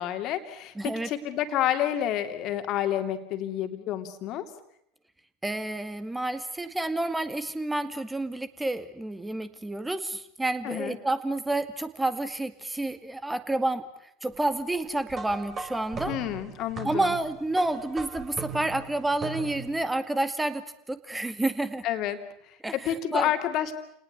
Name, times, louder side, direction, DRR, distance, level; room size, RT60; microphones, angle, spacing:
voice 1, 0.0-0.7 1.1-4.5 10.6-11.0 16.1-17.1 21.8-22.2 22.4-22.6 22.8-23.7, left 11 dB, 50° left, 8 dB, 2.8 m, -29 dB
voice 2, 0.8-1.1 5.4-16.2 16.8-21.8 22.6-23.3, right 2 dB, 10° right, 11 dB, 2.2 m, -29 dB
sound 1, 15.1-19.8, right 5 dB, 30° right, 4.8 m, -39 dB
29.0 x 19.5 x 8.3 m, 0.72 s
hypercardioid pair, 80°, 0 cm